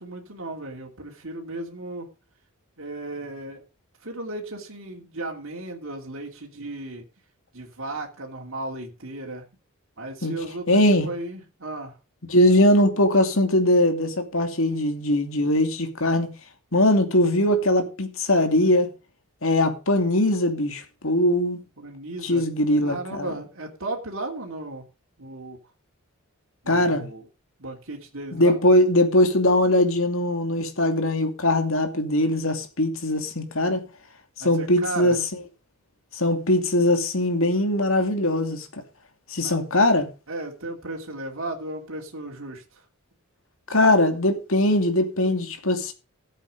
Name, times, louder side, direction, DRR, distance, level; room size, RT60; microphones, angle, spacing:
voice 1, 0.0-2.1 2.8-3.6 4.0-7.0 7.5-9.4 10.0-11.9 21.8-22.4 22.8-24.8 25.2-25.6 26.6-27.2 27.6-28.6 34.4-35.2 39.4-39.7 40.3-42.6, right 2 dB, 60° right, 3.1 m, -35 dB
voice 2, 10.7-11.1 12.3-16.3 16.7-18.9 19.4-21.6 22.2-23.3 26.7-27.1 28.3-33.8 34.4-35.2 36.1-38.7 39.3-40.1 43.7-45.9, left 1 dB, 65° left, 2.6 m, -21 dB
14.5 x 8.3 x 5.1 m
head